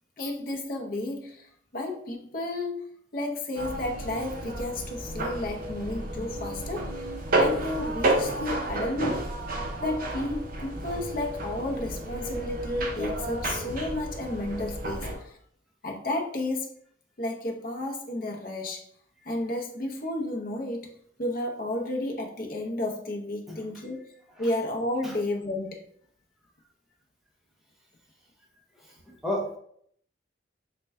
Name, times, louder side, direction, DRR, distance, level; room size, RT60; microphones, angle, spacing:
voice 1, 0.2-2.8 3.1-6.9 7.4-9.3 9.8-15.4 15.8-16.7 17.2-18.8 19.3-24.0 24.4-25.8, left 1 dB, 50° left, 2 dB, 0.6 m, -32 dB
sound 1, 3.6-15.2, right 1 dB, 50° right, 0.7 m, -31 dB
voice 2, 29.2-29.6, left 1 dB, ahead, -2 dB, 0.6 m, -31 dB
4.2 x 2.2 x 3.5 m, 0.65 s
head